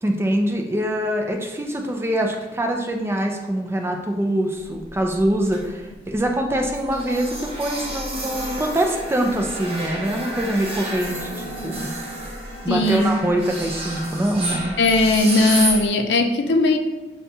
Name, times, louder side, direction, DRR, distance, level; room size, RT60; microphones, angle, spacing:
voice 1, 0.0-11.9 12.6-14.7, right 1 dB, 15° right, 2 dB, 0.4 m, -24 dB
sound 1, 4.8-5.8 6.1-6.3 6.5-15.9, right 1 dB, 35° right, 0.9 m, -30 dB
voice 2, 12.7-13.1 14.8-16.8, left 2 dB, 75° left, 4 dB, 0.5 m, -18 dB
6.6 x 2.2 x 2.7 m, 1.2 s
head